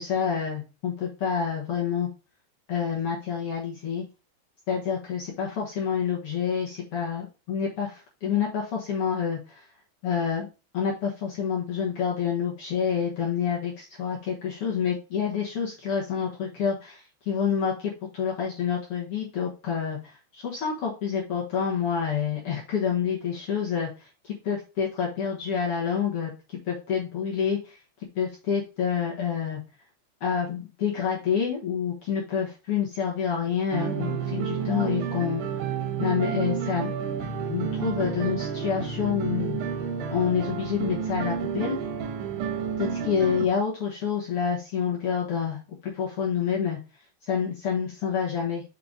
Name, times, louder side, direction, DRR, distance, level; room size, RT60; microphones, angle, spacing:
voice 1, 0.0-2.1 2.7-4.0 4.7-9.6 10.0-10.5 10.7-20.0 20.3-23.9 24.2-27.8 28.1-29.6 30.2-35.4 36.0-36.9 37.5-39.6 40.1-41.8 42.8-46.8 47.3-48.6, left 7 dB, 75° left, -4 dB, 1.3 m, -28 dB
sound 1, 33.7-43.5, right 7 dB, 80° right, 3.0 m, -30 dB
6.6 x 4.0 x 3.6 m, 0.30 s
omnidirectional pair, 4.8 m